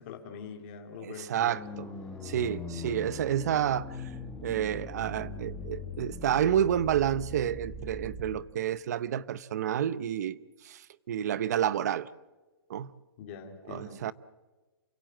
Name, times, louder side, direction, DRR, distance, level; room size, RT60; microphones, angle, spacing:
voice 1, 0.0-1.5 13.2-14.1, left 6 dB, 30° left, 3.0 m, -44 dB
voice 2, 1.0-1.9 2.2-4.1 4.4-10.4 10.6-12.1 12.7-12.9 13.7-14.1, right 10 dB, 45° right, 0.7 m, -29 dB
sound 1, 1.4-8.4, left 3 dB, 5° left, 1.6 m, -41 dB
28.5 x 16.5 x 7.7 m
hypercardioid pair, 170°, 12 cm